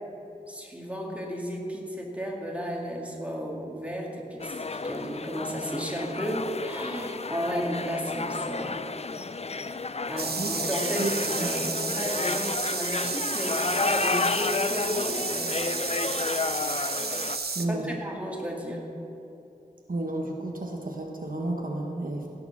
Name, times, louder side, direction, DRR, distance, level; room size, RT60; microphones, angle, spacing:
voice 1, 0.5-8.9 10.1-15.6 17.5-18.8, equal, 10° right, -2 dB, 2.3 m, -33 dB
sound 1, 4.4-17.4, left 4 dB, 40° left, 0.4 m, -31 dB
sound 2, 10.2-17.7, right 4 dB, 85° right, 0.8 m, -32 dB
voice 2, 17.5-17.9 19.9-22.3, right 2 dB, 60° right, 0 dB, 1.3 m, -31 dB
17.5 x 6.8 x 6.2 m, 2.9 s
wide cardioid pair, 55°, 16 cm